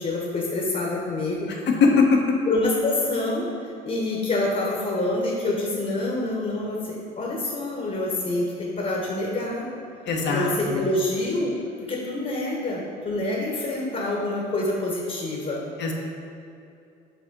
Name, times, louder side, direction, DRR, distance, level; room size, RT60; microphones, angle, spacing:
voice 1, 0.0-1.5 2.5-9.7 10.3-11.6 11.9-15.6, left 2 dB, 35° left, -3 dB, 1.3 m, -26 dB
voice 2, 1.5-2.4 10.1-10.8 15.8-15.9, left 4 dB, 55° left, 1 dB, 1.1 m, -21 dB
6.2 x 3.5 x 5.4 m, 2.6 s
supercardioid pair, 75°, 21 cm